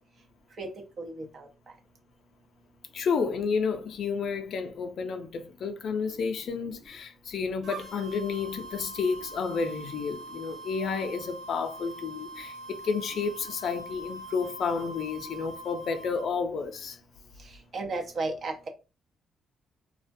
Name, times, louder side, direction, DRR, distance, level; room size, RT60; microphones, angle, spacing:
voice 1, 1.0-1.5 17.7-18.5, right 3 dB, 50° right, 0.6 m, -33 dB
voice 2, 2.9-17.0, left 5 dB, 60° left, 0.4 m, -31 dB
sound 1, 7.6-16.3, right 2 dB, 70° right, 0.9 m, -43 dB
2.3 x 2.1 x 2.5 m
cardioid pair, 90°, 0 cm